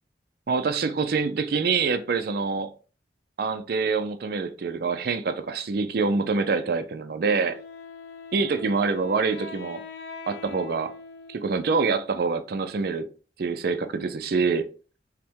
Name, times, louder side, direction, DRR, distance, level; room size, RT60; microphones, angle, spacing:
voice 1, 0.5-2.7 3.4-7.6 8.3-9.8 10.3-10.9 11.3-13.1 13.4-14.7, right 4 dB, 55° right, 0.4 m, -25 dB
Wind instrument woodwind instrument, 7.5-12.3, left 4 dB, 75° left, 0.6 m, -43 dB
5.5 x 2.1 x 3.6 m
head